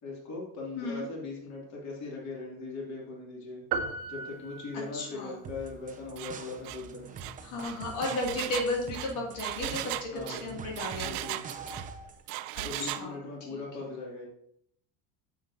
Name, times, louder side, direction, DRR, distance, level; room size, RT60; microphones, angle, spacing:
voice 1, 0.0-3.6 4.1-7.1 10.1-10.5 10.9-11.4 12.6-14.3, left 3 dB, 35° left, -3 dB, 2.7 m, -40 dB
sound 1, 3.7-5.2, right 5 dB, 60° right, 1.0 m, -35 dB
voice 2, 4.7-5.3 7.4-11.2 12.8-13.1, left 2 dB, 75° left, -1 dB, 2.6 m, -34 dB
sound 2, 5.4-12.2, right 5 dB, 20° right, 0.6 m, -45 dB
Engine, 6.2-6.4 6.6-6.8 7.2-11.9 12.3-13.1, right 16 dB, 80° right, 0.6 m, -37 dB
9.4 x 7.4 x 2.7 m, 0.69 s
cardioid pair, 150°, 45 cm